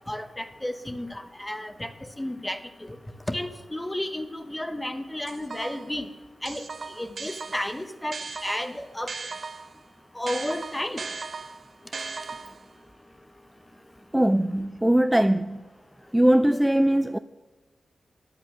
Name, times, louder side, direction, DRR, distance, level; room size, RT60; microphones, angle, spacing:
voice 1, 0.1-1.9 2.2-2.6 2.9-3.0 3.3-6.1 6.4-6.6 7.0-9.1 10.1-11.1, left 1 dB, 15° left, 1.0 m, -32 dB
sound 1, 5.3-6.0 6.5-9.8 10.3-12.7, right 4 dB, 60° right, 0.7 m, -37 dB
voice 2, 14.1-15.6 16.1-17.2, right 1 dB, 10° right, 0.3 m, -21 dB
10.5 x 8.2 x 6.1 m
cardioid pair, 50°, 0 cm